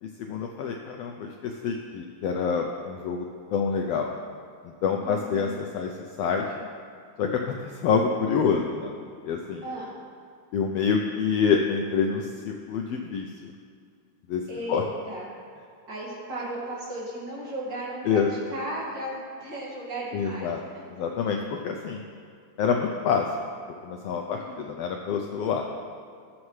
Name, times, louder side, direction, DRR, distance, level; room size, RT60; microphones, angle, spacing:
voice 1, 0.0-3.3 3.5-4.1 4.6-5.9 6.2-6.6 7.2-8.9 9.2-9.6 10.5-13.5 14.3-14.4 14.7-14.8 18.1-18.3 20.1-20.6 20.9-22.0 22.6-23.3 23.8-24.4 24.7-25.7, left 6 dB, 90° left, 2 dB, 1.4 m, -27 dB
voice 2, 5.0-5.5 9.6-9.9 14.5-15.3 15.9-18.2 18.5-20.8 21.2-21.3 24.3-24.7, right 1 dB, 40° right, -6 dB, 2.5 m, -36 dB
20.0 x 7.2 x 3.2 m, 2.2 s
omnidirectional pair, 3.5 m